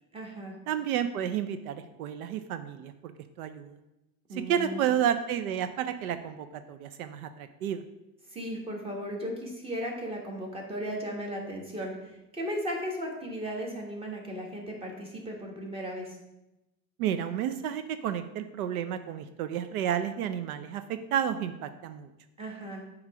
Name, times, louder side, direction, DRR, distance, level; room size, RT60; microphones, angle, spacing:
voice 1, 0.1-0.6 4.3-4.9 8.3-16.2 22.4-22.8, equal, 15° right, 0 dB, 1.3 m, -36 dB
voice 2, 0.7-3.1 3.4-3.8 4.3-7.8 17.0-22.1, right 9 dB, 80° right, 10 dB, 0.6 m, -31 dB
7.3 x 3.1 x 4.8 m, 0.95 s
supercardioid pair, 130°, 43 cm